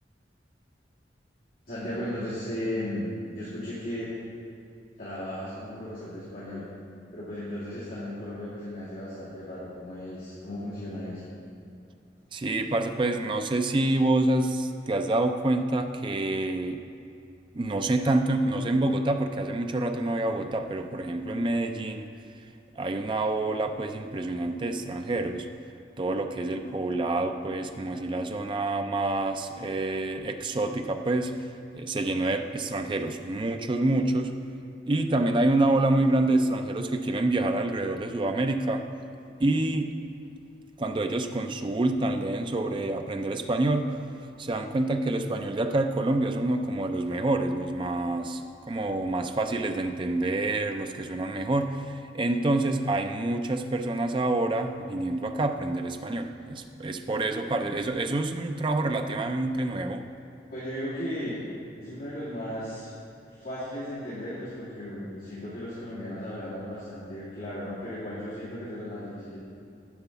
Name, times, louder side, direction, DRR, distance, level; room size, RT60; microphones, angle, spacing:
voice 1, 1.7-4.1 5.0-6.7 7.1-11.3 60.5-61.4 61.8-62.9 63.2-69.4, left 1 dB, 55° left, -12 dB, 2.3 m, -36 dB
voice 2, 12.3-16.8 17.5-22.0 22.8-25.5 26.0-31.4 31.7-34.4 34.9-38.9 39.4-39.9 40.8-44.0 44.4-60.0, right 2 dB, 25° right, 6 dB, 0.4 m, -27 dB
10.5 x 4.5 x 6.9 m, 2.6 s
head